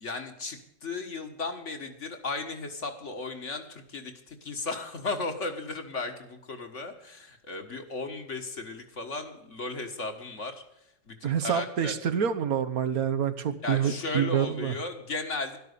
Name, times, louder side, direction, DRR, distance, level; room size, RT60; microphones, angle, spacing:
voice 1, 0.0-10.6 11.1-12.0 13.6-15.6, left 3 dB, 50° left, 5 dB, 1.9 m, -35 dB
voice 2, 11.2-14.7, right 8 dB, 70° right, 8 dB, 1.4 m, -27 dB
12.5 x 12.0 x 6.7 m, 0.79 s
omnidirectional pair, 1.7 m